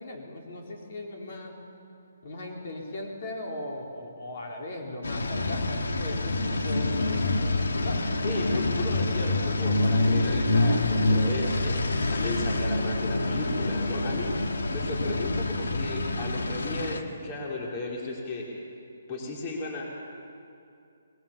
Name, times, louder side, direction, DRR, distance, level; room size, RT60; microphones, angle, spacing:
voice 1, 0.0-1.6 2.2-8.4, left 1 dB, 50° left, 0 dB, 3.9 m, -38 dB
sound 1, 5.0-17.0, left 2 dB, 90° left, 1.8 m, -26 dB
voice 2, 8.2-14.3 14.7-18.5 19.1-19.8, left 2 dB, 25° left, -2 dB, 3.5 m, -35 dB
23.5 x 21.0 x 7.2 m, 2.6 s
hypercardioid pair, 165°, 0 cm